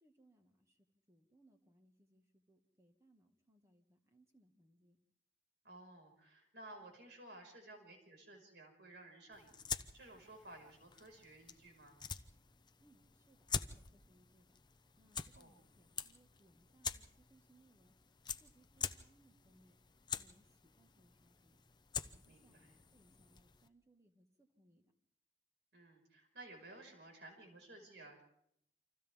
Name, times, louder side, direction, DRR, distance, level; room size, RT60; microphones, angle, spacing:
voice 1, 0.0-5.0 12.8-14.6 15.0-18.0 18.3-19.8 20.1-21.6 22.0-24.9, right 1 dB, 15° right, 4 dB, 1.8 m, -70 dB
voice 2, 5.6-12.0 15.4-15.5 22.2-22.7 25.7-28.2, right 2 dB, 65° right, 2 dB, 5.7 m, -56 dB
sound 1, 9.3-23.7, left 6 dB, 25° left, 0.8 m, -47 dB
29.0 x 26.5 x 3.7 m, 0.72 s
head